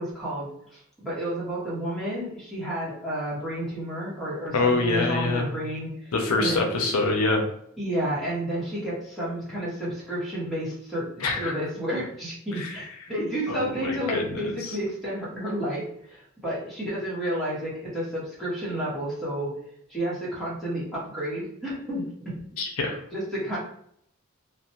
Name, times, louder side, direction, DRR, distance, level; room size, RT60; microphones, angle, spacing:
voice 1, 0.0-6.5 7.8-19.6 19.9-22.3 23.1-23.6, right 1 dB, ahead, -8 dB, 1.0 m, -31 dB
voice 2, 4.5-5.5 6.1-7.4 11.2-11.5 12.6-12.8 13.5-14.8 22.6-23.0, left 3 dB, 75° left, 2 dB, 0.5 m, -25 dB
2.5 x 2.1 x 2.8 m, 0.70 s
head